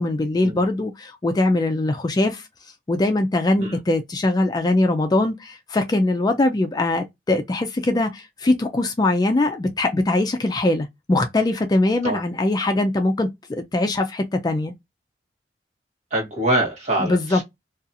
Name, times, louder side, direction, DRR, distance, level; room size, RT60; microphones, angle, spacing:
voice 1, 0.0-2.5 2.9-14.7 17.0-17.4, left 2 dB, 25° left, 0.3 m, -22 dB
voice 2, 16.1-17.4, right 1 dB, 40° right, 1.1 m, -24 dB
2.7 x 2.3 x 2.4 m
head